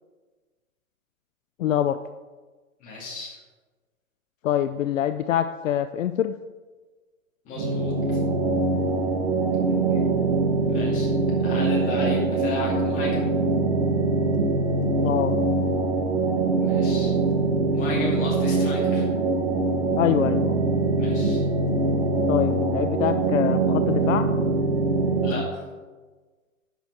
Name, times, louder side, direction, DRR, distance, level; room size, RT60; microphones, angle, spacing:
voice 1, 1.6-2.0 4.4-6.4 15.0-15.3 20.0-20.6 22.3-24.3, left 11 dB, 65° left, 10 dB, 0.5 m, -25 dB
voice 2, 2.8-3.4 7.4-7.9 10.7-11.1 11.4-13.2 16.6-17.1 17.7-19.1 21.0-21.4 25.2-25.6, left 2 dB, 20° left, -4 dB, 2.4 m, -33 dB
sound 1, 7.6-25.3, right 3 dB, 50° right, 1.5 m, -23 dB
10.0 x 6.2 x 4.8 m, 1.3 s
hypercardioid pair, 160°, 42 cm